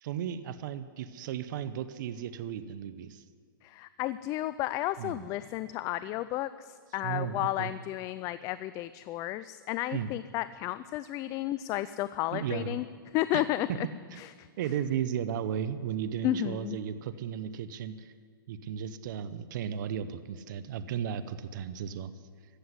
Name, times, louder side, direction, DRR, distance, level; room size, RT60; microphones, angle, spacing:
voice 1, 0.0-3.2 5.0-5.3 7.0-7.7 9.9-10.1 12.3-12.8 13.3-13.4 14.1-14.2 14.6-18.1 18.5-22.1, right 9 dB, 55° right, 13 dB, 0.8 m, -35 dB
voice 2, 3.6-12.9 13.1-13.9 14.2-14.5 16.2-16.8, left 14 dB, 30° left, 15 dB, 0.3 m, -32 dB
14.5 x 7.9 x 9.7 m, 2.1 s
hypercardioid pair, 135°, 12 cm